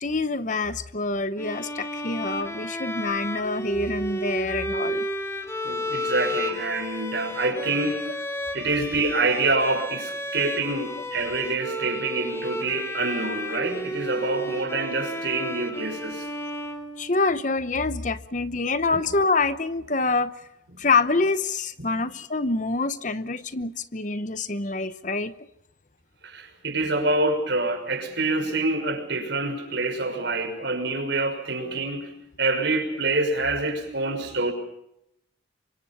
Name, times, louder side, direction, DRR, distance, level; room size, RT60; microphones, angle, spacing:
voice 1, 0.0-5.1 17.0-20.3 20.8-25.3, left 3 dB, 40° left, 13 dB, 0.9 m, -26 dB
Bowed string instrument, 1.4-17.5, equal, 15° left, 2.3 m, -32 dB
voice 2, 5.6-8.1 8.5-16.3 18.9-19.0 20.7-20.9 21.8-22.0 26.2-32.1 32.4-34.5, right 2 dB, 65° right, 4 dB, 6.1 m, -26 dB
28.5 x 25.0 x 5.6 m, 0.78 s
head